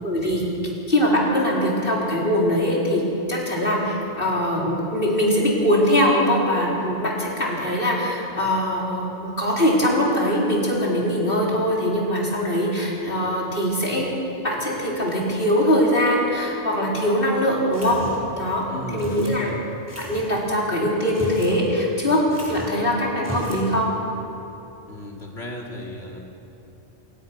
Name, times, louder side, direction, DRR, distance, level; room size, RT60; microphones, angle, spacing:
voice 1, 0.0-0.4 0.9-3.0 3.3-14.1 14.4-18.0 18.4-18.7 18.9-19.5 20.0-23.9, equal, 55° left, -4 dB, 4.3 m, -22 dB
sound 1, 17.7-18.4 19.0-19.4 19.9-20.3 21.0-21.6 21.8-21.9 22.3-22.8 23.2-23.7, equal, 15° right, 4.4 m, -35 dB
voice 2, 18.7-19.6 24.9-26.2, left 1 dB, 70° left, -1 dB, 2.9 m, -35 dB
27.5 x 16.5 x 5.9 m, 3.0 s
omnidirectional pair, 1.1 m